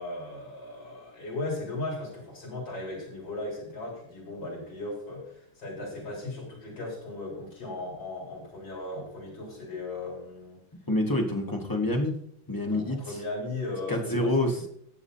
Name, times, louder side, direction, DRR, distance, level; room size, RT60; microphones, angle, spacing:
voice 1, 0.0-10.6 12.7-14.5, left 2 dB, 60° left, -4 dB, 4.9 m, -37 dB
voice 2, 10.9-12.2 12.5-13.2 13.9-14.7, left 1 dB, 15° left, 1 dB, 1.0 m, -27 dB
18.0 x 7.1 x 2.8 m, 0.70 s
omnidirectional pair, 2.3 m